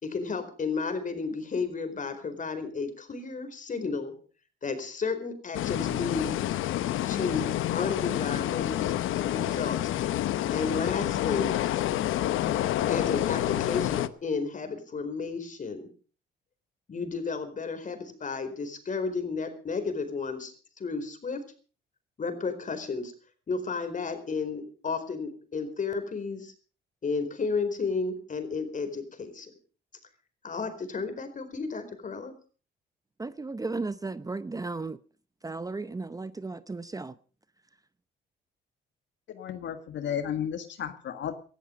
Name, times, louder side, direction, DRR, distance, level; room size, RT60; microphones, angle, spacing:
voice 1, 0.0-4.1 4.6-6.3 7.1-8.9 9.3-9.8 10.5-11.6 12.9-15.9 16.9-21.4 22.2-23.1 23.5-26.5 27.0-29.5 30.4-32.3, left 4 dB, 40° left, 4.5 m, -32 dB
sound 1, 5.5-14.1, left 13 dB, 85° left, 1.0 m, -28 dB
voice 2, 33.2-35.0 35.4-37.2, right 3 dB, 20° right, 0.7 m, -35 dB
voice 3, 39.3-41.3, left 9 dB, 70° left, 1.7 m, -33 dB
18.0 x 14.0 x 5.3 m
cardioid pair, 90°, 20 cm